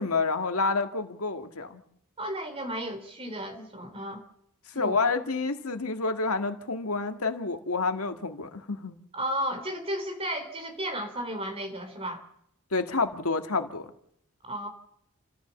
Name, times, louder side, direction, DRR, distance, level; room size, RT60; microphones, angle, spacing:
voice 1, 0.0-1.8 4.7-9.0 12.7-13.9, left 3 dB, 75° left, 7 dB, 1.7 m, -28 dB
voice 2, 2.2-4.2 4.7-5.0 9.1-12.2 14.4-14.7, equal, 25° right, 6 dB, 3.4 m, -33 dB
29.0 x 14.0 x 7.1 m, 0.75 s
head